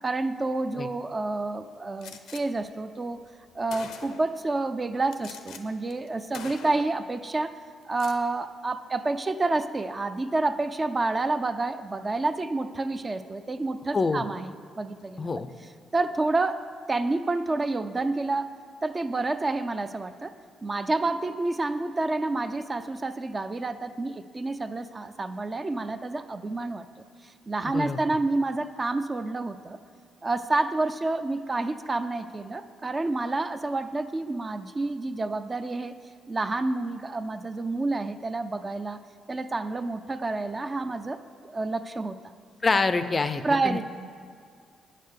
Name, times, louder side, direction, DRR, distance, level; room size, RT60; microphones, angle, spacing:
voice 1, 0.0-3.2 3.5-7.5 7.8-15.3 15.9-16.6 16.9-18.5 18.8-20.3 20.6-26.9 27.2-29.8 30.2-36.0 36.3-39.0 39.3-42.2 43.4-43.8, right 2 dB, 25° right, 10 dB, 0.4 m, -29 dB
Gunshot gunfire, 2.0-2.4 3.3-3.4 3.7-4.4 5.1-5.6 5.9-6.1 6.3-7.0 7.8-8.2, left 7 dB, 85° left, 0.6 m, -43 dB
voice 2, 13.9-14.2 15.2-15.5 27.7-28.0 42.6-43.8, left 4 dB, 30° left, 11 dB, 0.4 m, -26 dB
9.2 x 6.7 x 6.5 m, 2.1 s
cardioid pair, 90°, 0 cm